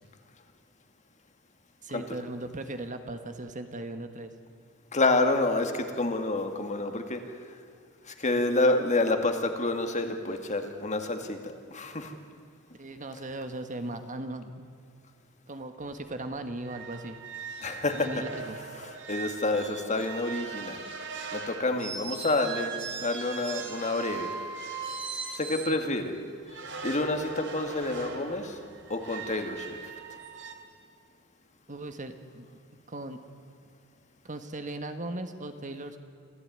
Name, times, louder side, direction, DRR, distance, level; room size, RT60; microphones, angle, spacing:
voice 1, 1.8-4.3 12.8-14.7 15.5-17.2 17.9-18.6 31.7-32.5 32.9-33.2 34.3-36.0, right 2 dB, 35° right, 8 dB, 1.5 m, -38 dB
voice 2, 4.9-7.2 8.1-12.1 17.6-18.1 19.1-20.8 21.3-24.3 25.3-26.1 26.8-28.6 28.9-29.8, left 2 dB, 35° left, 6 dB, 2.2 m, -28 dB
sound 1, 15.8-15.9 16.2-16.4 16.6-25.8 26.5-30.5, right 5 dB, 60° right, 2.8 m, -40 dB
26.5 x 15.0 x 9.5 m, 2.3 s
head